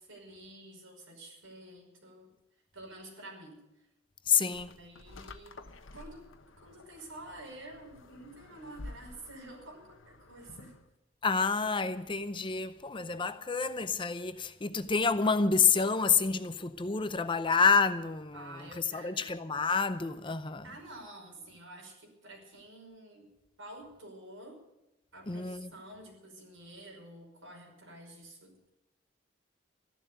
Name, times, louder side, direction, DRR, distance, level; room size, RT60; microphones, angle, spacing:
voice 1, 0.0-2.3 2.7-3.6 4.4-5.6 5.9-6.3 6.6-10.8 13.1-13.3 18.3-19.4 20.6-23.3 23.6-24.6 25.1-28.7, right 1 dB, 85° right, 5.6 m, -49 dB
voice 2, 4.3-4.7 11.2-20.6 25.3-25.7, left 5 dB, 25° left, 0.6 m, -28 dB
sound 1, 4.5-10.9, left 2 dB, 80° left, 1.1 m, -51 dB
14.5 x 11.5 x 7.9 m
head